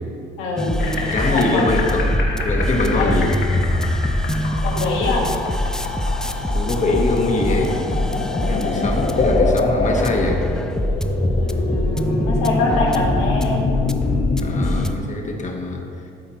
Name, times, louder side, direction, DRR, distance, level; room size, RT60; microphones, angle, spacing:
voice 1, 0.4-0.9 1.3-1.6 2.9-3.3 4.6-5.3 11.4-13.7, left 3 dB, 85° left, -1 dB, 1.5 m, -24 dB
sound 1, 0.6-14.9, left 1 dB, 5° left, 0.4 m, -24 dB
sound 2, 0.8-14.9, left 3 dB, 55° left, 1.3 m, -25 dB
voice 2, 1.1-2.0 2.4-3.4 6.5-7.8 8.5-10.5 14.4-15.8, left 2 dB, 35° left, 2 dB, 1.3 m, -23 dB
12.5 x 4.2 x 4.2 m, 2.4 s
supercardioid pair, 80°, 20 cm